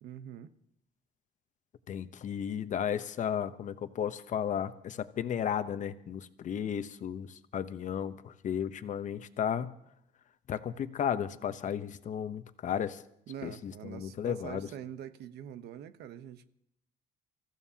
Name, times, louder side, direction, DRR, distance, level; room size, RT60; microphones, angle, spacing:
voice 1, 0.0-0.5 13.3-16.4, right 10 dB, 75° right, 0.9 m, -44 dB
voice 2, 1.9-9.7 10.5-13.0 13.4-14.7, left 8 dB, 45° left, 0.9 m, -34 dB
26.5 x 14.5 x 2.9 m
cardioid pair, 110°, 17 cm